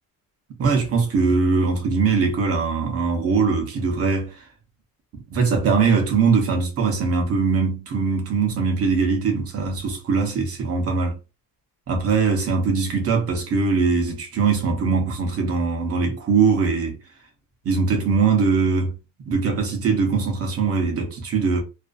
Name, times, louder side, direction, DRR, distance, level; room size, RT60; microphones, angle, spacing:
voice 1, 0.6-4.4 5.1-11.2 11.9-17.0 17.6-19.0 19.3-21.6, right 4 dB, 35° right, 0.7 m, -21 dB
2.5 x 2.3 x 2.4 m
cardioid pair, 175°, 40 cm